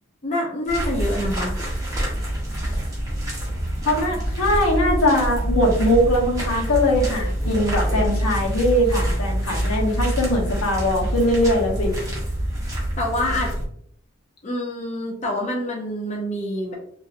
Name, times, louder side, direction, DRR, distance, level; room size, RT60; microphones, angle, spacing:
voice 1, 0.2-1.5 13.0-13.6 14.4-16.7, left 1 dB, 35° left, -1 dB, 0.5 m, -26 dB
sound 1, 0.7-13.7, equal, 15° right, 0.7 m, -26 dB
voice 2, 3.8-11.9, left 1 dB, 85° left, -1 dB, 0.9 m, -21 dB
2.9 x 2.5 x 2.4 m, 0.65 s
head